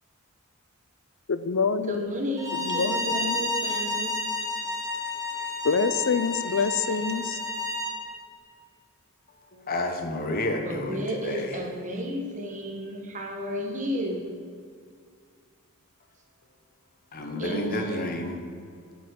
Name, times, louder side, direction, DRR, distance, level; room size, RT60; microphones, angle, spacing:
voice 1, 1.3-2.2 2.6-3.4 5.6-7.4, left 5 dB, 60° left, 12 dB, 0.5 m, -26 dB
voice 2, 1.9-4.1 10.6-14.2 17.4-18.2, equal, 35° right, 1 dB, 1.4 m, -32 dB
Bowed string instrument, 2.4-7.9, left 2 dB, 15° right, 1.4 m, -30 dB
voice 3, 9.5-11.6 17.1-18.4, left 1 dB, 40° left, 4 dB, 1.0 m, -30 dB
7.9 x 7.3 x 6.4 m, 2.2 s
head